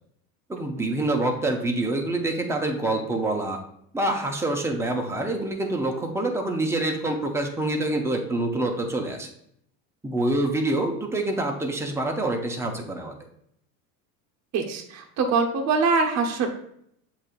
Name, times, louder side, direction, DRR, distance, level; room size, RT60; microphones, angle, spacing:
voice 1, 0.5-3.6 3.9-9.3 10.0-13.1, right 2 dB, 5° right, 2 dB, 0.6 m, -26 dB
voice 2, 14.5-16.5, right 4 dB, 35° right, 2 dB, 0.8 m, -23 dB
7.4 x 2.8 x 2.5 m, 0.70 s
hypercardioid pair, 95°, 49 cm